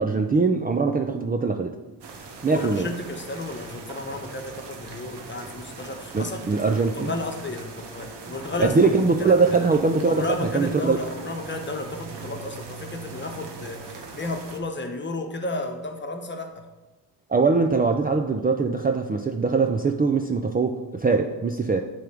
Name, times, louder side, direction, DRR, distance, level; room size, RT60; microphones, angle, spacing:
voice 1, 0.0-1.7 2.4-2.9 6.1-7.2 8.6-11.0 17.3-21.8, right 4 dB, 20° right, 4 dB, 0.5 m, -22 dB
sound 1, 2.0-14.6, right 4 dB, 65° right, 1.3 m, -40 dB
voice 2, 2.5-8.8 9.2-9.7 10.1-16.7, left 2 dB, 25° left, 4 dB, 1.1 m, -33 dB
8.3 x 3.6 x 6.0 m, 1.2 s
cardioid pair, 70°, 44 cm